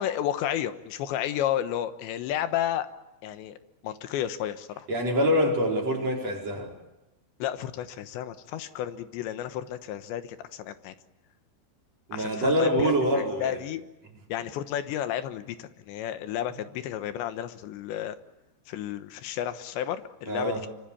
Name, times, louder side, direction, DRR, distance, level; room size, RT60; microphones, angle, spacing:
voice 1, 0.0-2.9 3.2-3.6 3.8-4.9 7.4-11.0 12.1-13.8 14.3-18.2 18.7-20.7, left 11 dB, 85° left, 11 dB, 3.5 m, -32 dB
voice 2, 4.9-6.7 12.1-13.6 20.3-20.7, equal, 35° right, 0 dB, 5.6 m, -25 dB
26.0 x 25.0 x 8.7 m, 0.96 s
omnidirectional pair, 5.0 m